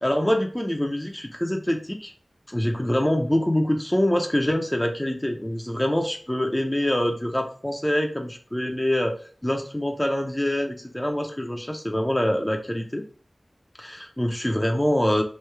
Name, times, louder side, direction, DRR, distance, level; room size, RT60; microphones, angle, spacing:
voice 1, 0.0-2.1 2.5-13.0 13.8-15.2, left 1 dB, 15° left, 3 dB, 0.5 m, -25 dB
3.1 x 2.7 x 3.3 m, 0.42 s
wide cardioid pair, 60°, 0 cm